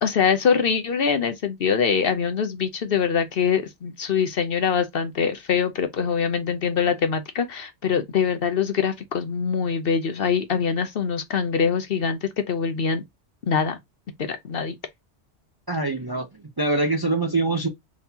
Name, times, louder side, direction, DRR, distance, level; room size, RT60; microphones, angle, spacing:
voice 1, 0.0-13.0 13.5-13.8 14.2-14.7, left 6 dB, 55° left, 0.8 m, -23 dB
voice 2, 15.7-16.3 16.6-17.7, right 2 dB, 25° right, 0.5 m, -23 dB
3.8 x 3.6 x 2.7 m
omnidirectional pair, 1.2 m